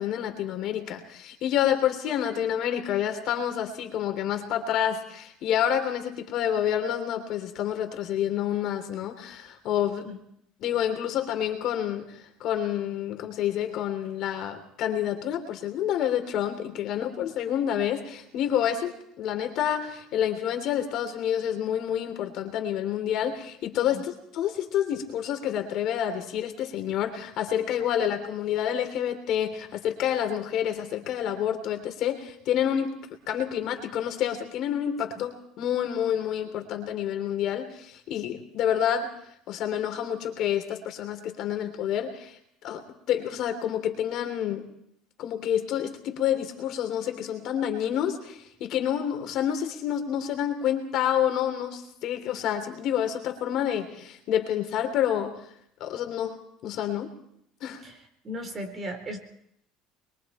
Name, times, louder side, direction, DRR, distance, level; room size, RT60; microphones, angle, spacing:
voice 1, 0.0-10.1 10.6-12.1 12.4-32.9 33.3-39.1 39.5-42.4 42.6-44.6 45.2-55.3 55.8-56.4 56.6-57.1 57.6-57.8, left 10 dB, 55° left, 5 dB, 3.4 m, -28 dB
voice 2, 57.8-59.2, equal, 25° right, 4 dB, 4.0 m, -37 dB
25.5 x 23.0 x 4.4 m, 0.72 s
cardioid pair, 130°, 0 cm